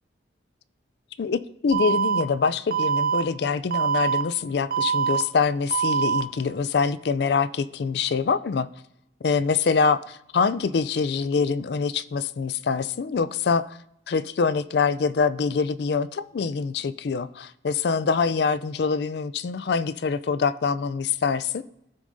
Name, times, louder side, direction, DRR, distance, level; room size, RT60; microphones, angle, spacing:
voice 1, 1.2-8.7 9.2-13.8 14.1-21.6, left 5 dB, 60° left, 15 dB, 0.4 m, -25 dB
Alarm, 1.7-2.2 2.7-3.2 3.7-4.2 4.7-5.2 5.7-6.2, right 7 dB, 50° right, 0.6 m, -23 dB
15.5 x 6.2 x 2.6 m, 0.86 s
head